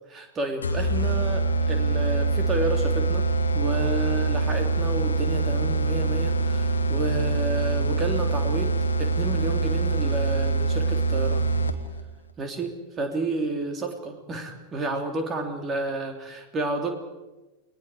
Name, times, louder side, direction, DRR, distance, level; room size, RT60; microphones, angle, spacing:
voice 1, 0.1-11.5 12.4-16.9, right 2 dB, 25° right, 4 dB, 3.3 m, -31 dB
sound 1, 0.6-12.0, right 3 dB, 75° left, 1.4 m, -24 dB
30.0 x 20.0 x 5.0 m, 1.1 s
figure-of-eight pair, 90°, 0 cm